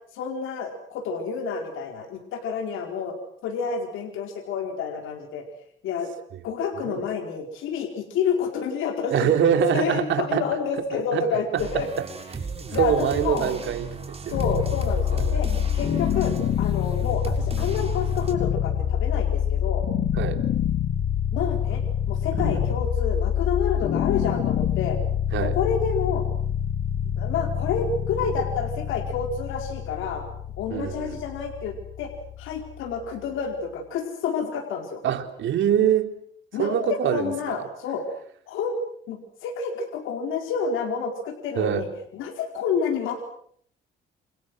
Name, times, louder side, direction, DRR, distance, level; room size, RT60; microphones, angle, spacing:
voice 1, 0.1-3.1 3.4-5.4 5.8-6.1 6.4-9.4 9.7-11.9 12.7-13.4 14.3-15.5 15.7-19.8 21.3-25.0 25.4-26.2 27.2-30.2 30.6-32.1 32.4-35.0 36.5-38.0 38.5-38.7 39.1-41.9 42.1-43.2, left 6 dB, 90° left, 2 dB, 4.7 m, -29 dB
voice 2, 9.1-10.5 11.1-11.2 11.5-11.8 12.8-13.9 14.3-14.6 15.1-15.4 20.1-20.4 22.4-22.6 25.3-25.6 30.7-31.2 35.0-36.1 36.6-37.6 41.6-41.9, right 9 dB, 75° right, 7 dB, 3.8 m, -24 dB
sound 1, 11.6-18.3, right 5 dB, 30° right, 6.8 m, -35 dB
sound 2, 14.3-33.3, left 9 dB, 75° left, 2.2 m, -26 dB
29.0 x 28.5 x 6.4 m, 0.65 s
cardioid pair, 90°, 20 cm